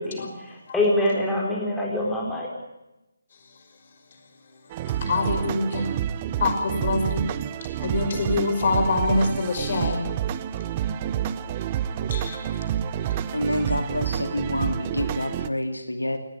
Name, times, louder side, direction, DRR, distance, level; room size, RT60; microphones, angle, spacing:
voice 1, 0.0-2.5, left 1 dB, 5° left, -3 dB, 4.3 m, -25 dB
sound 1, 4.7-15.5, right 10 dB, 25° right, 0.9 m, -29 dB
voice 2, 5.0-5.9 6.4-7.3 7.8-10.0 12.1-12.5, left 3 dB, 40° left, 5 dB, 5.5 m, -25 dB
voice 3, 13.3-16.2, left 1 dB, 80° left, 6 dB, 2.7 m, -28 dB
20.0 x 18.0 x 9.0 m, 0.96 s
figure-of-eight pair, 150°, 0 cm